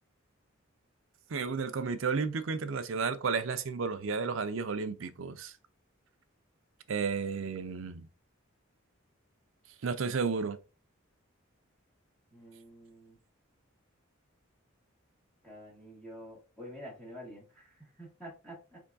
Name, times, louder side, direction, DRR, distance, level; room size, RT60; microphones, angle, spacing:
voice 1, 1.3-5.5 6.9-8.1 9.8-10.6, right 5 dB, 70° right, 0.5 m, -32 dB
voice 2, 12.3-13.2 15.4-18.8, equal, 5° left, 1.9 m, -48 dB
4.4 x 3.6 x 2.6 m
head